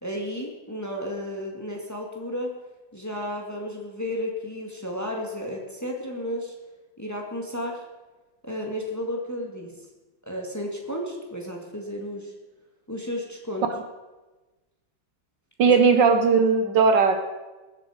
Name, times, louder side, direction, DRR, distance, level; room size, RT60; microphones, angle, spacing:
voice 1, 0.0-2.5 2.9-6.5 7.0-7.8 8.4-9.7 10.2-12.3 12.9-13.7 15.6-15.8, equal, 10° left, 0 dB, 1.8 m, -33 dB
voice 2, 15.6-17.2, right 5 dB, 70° right, 7 dB, 1.5 m, -18 dB
21.5 x 7.7 x 5.0 m, 1.2 s
omnidirectional pair, 2.2 m